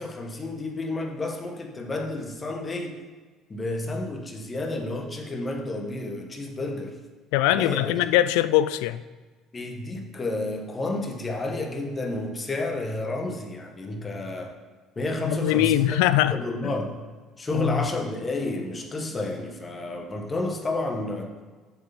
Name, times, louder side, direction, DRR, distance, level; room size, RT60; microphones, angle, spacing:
voice 1, 0.0-3.0 3.5-7.0 7.5-8.0 9.5-14.6 14.9-16.0 16.3-17.0 17.4-21.4, left 2 dB, 30° left, 1.5 m, -31 dB
voice 2, 7.3-9.0 15.2-16.4 17.5-17.9, left 13 dB, 75° left, 0.3 m, -22 dB
7.6 x 6.9 x 4.2 m
hypercardioid pair, 65°, 0 cm